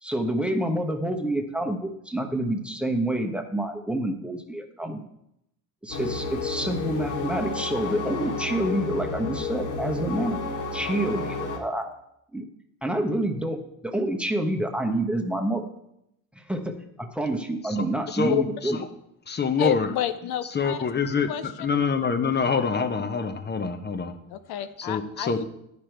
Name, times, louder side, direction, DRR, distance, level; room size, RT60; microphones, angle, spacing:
voice 1, 0.0-5.0 5.8-10.4 10.7-11.9 12.3-12.4 12.8-15.7 16.3-18.8, right 1 dB, 5° right, 4 dB, 1.0 m, -28 dB
sound 1, 5.9-11.6, left 3 dB, 50° left, 1.8 m, -31 dB
voice 2, 17.6-18.4 18.6-18.8 19.3-19.9 20.5-24.2 24.8-25.4, left 5 dB, 25° left, 9 dB, 0.8 m, -26 dB
voice 3, 19.6-20.8 21.3-21.4 24.3-25.4, left 11 dB, 65° left, 10 dB, 0.6 m, -29 dB
9.6 x 5.1 x 4.6 m, 0.79 s
supercardioid pair, 85°, 40 cm